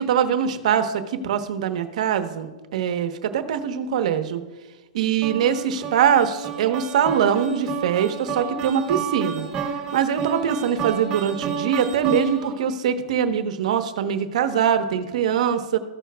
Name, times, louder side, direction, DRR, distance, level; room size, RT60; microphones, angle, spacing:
voice 1, 0.0-4.4 4.9-9.5 9.9-15.8, right 8 dB, 70° right, 8 dB, 1.0 m, -23 dB
sound 1, 5.2-12.6, right 6 dB, 25° right, 1.9 m, -31 dB
15.5 x 6.2 x 2.3 m, 1.2 s
hypercardioid pair, 145°, 4 cm